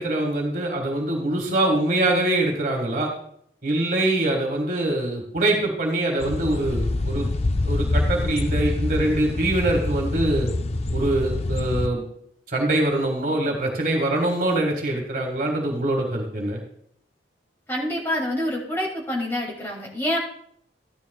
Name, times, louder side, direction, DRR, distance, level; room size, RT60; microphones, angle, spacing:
voice 1, 0.0-3.1 3.6-7.3 7.6-10.5 10.9-12.0 12.5-16.6, right 1 dB, 50° right, 1 dB, 1.8 m, -24 dB
sound 1, 6.2-11.9, left 2 dB, 35° left, 0.4 m, -25 dB
voice 2, 17.7-20.2, left 1 dB, 15° left, -3 dB, 2.4 m, -26 dB
14.0 x 11.0 x 2.3 m, 0.67 s
head